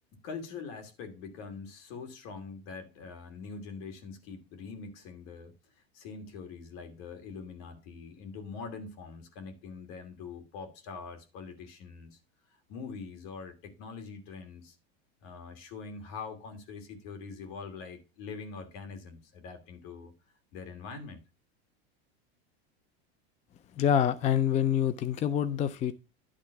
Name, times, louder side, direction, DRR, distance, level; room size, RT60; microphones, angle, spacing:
voice 1, 0.2-5.5 5.9-12.2 12.7-14.7 15.2-20.1 20.5-21.2, left 5 dB, 60° left, 2.7 m, -43 dB
voice 2, 23.8-25.9, left 9 dB, 20° left, 0.4 m, -26 dB
11.0 x 3.7 x 5.8 m
supercardioid pair, 130°, 34 cm